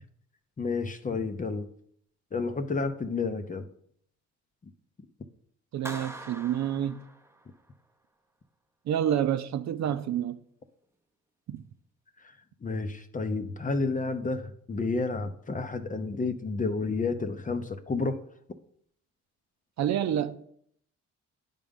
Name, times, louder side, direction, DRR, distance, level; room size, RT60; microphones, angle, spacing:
voice 1, 0.6-1.7 2.3-3.7 12.6-18.2, left 3 dB, 25° left, 0.7 m, -30 dB
voice 2, 5.7-7.0 8.9-10.4 11.5-11.6 19.8-20.4, right 10 dB, 65° right, 0.6 m, -28 dB
Clapping, 5.8-7.7, right 2 dB, 10° right, 0.8 m, -43 dB
10.0 x 3.7 x 5.3 m
cardioid pair, 90°, 30 cm